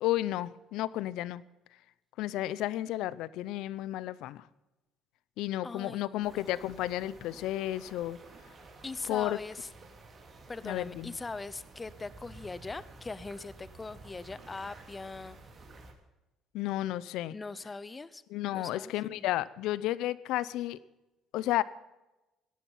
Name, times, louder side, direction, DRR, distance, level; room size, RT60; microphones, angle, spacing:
voice 1, 0.0-1.4 2.2-4.4 5.4-8.2 9.1-9.4 10.6-11.1 16.5-17.4 18.3-20.8 21.3-21.6, left 14 dB, 80° left, 19 dB, 0.6 m, -32 dB
voice 2, 5.6-6.4 6.8-6.9 8.8-9.7 10.5-15.4 17.3-18.2 18.5-19.2, left 3 dB, 20° left, 17 dB, 0.7 m, -41 dB
sound 1, 6.2-15.9, right 3 dB, 35° right, 2.8 m, -52 dB
17.5 x 11.5 x 5.6 m, 1.0 s
cardioid pair, 130°, 0 cm